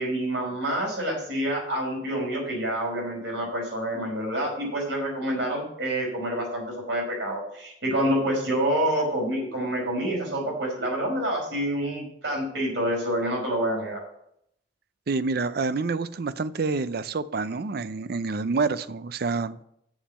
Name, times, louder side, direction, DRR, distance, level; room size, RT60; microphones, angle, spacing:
voice 1, 0.0-14.0, right 1 dB, 70° right, -1 dB, 5.0 m, -27 dB
voice 2, 15.1-19.6, right 4 dB, 55° right, 14 dB, 0.5 m, -28 dB
7.3 x 7.2 x 7.5 m, 0.73 s
head